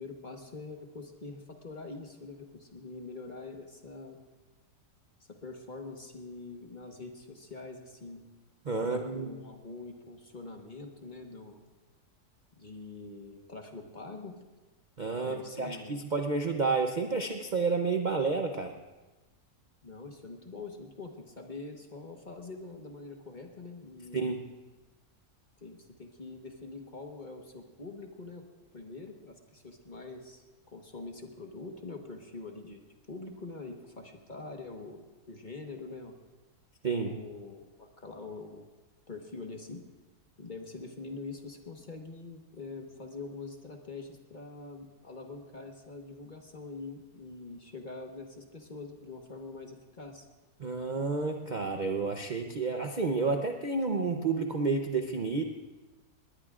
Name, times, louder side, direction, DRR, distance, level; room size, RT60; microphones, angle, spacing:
voice 1, 0.0-4.2 5.3-8.2 8.7-11.6 12.6-14.4 15.2-16.0 19.8-24.4 25.6-28.4 28.7-36.1 37.0-38.7 39.1-39.8 40.4-50.3, left 3 dB, 35° left, 3 dB, 1.3 m, -44 dB
voice 2, 8.7-9.3 15.0-18.8 24.1-24.4 36.8-37.2 50.6-55.4, right 4 dB, 40° right, 3 dB, 0.7 m, -30 dB
20.0 x 19.5 x 2.5 m, 1.2 s
omnidirectional pair, 1.6 m